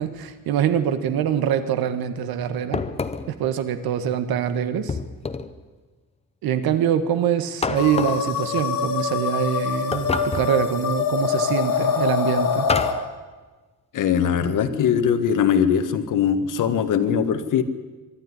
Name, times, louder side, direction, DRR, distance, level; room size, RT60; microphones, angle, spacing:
voice 1, 0.0-2.8 3.3-5.0 6.4-12.7, right 9 dB, 85° right, 10 dB, 1.6 m, -24 dB
sound 1, 2.7-3.4 4.9-5.6 7.6-8.3 9.9-10.6 12.7-13.1, left 4 dB, 20° left, 0.7 m, -27 dB
sound 2, 7.7-12.9, left 6 dB, 80° left, 3.0 m, -24 dB
voice 2, 13.9-17.6, left 8 dB, 60° left, 10 dB, 1.5 m, -21 dB
23.5 x 12.5 x 9.7 m, 1.3 s
cardioid pair, 180°, 35 cm